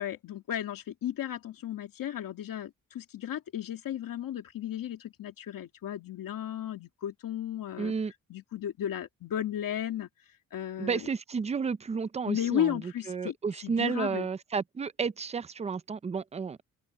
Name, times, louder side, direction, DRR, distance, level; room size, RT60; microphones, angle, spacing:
voice 1, 0.0-7.9 8.3-10.1 10.5-11.1 12.3-13.3 13.6-14.3, left 11 dB, 75° left, 2.5 m, -34 dB
voice 2, 7.8-8.1 10.8-12.8 13.1-16.6, right 5 dB, 20° right, 0.4 m, -32 dB
open air
wide cardioid pair, 175°, 34 cm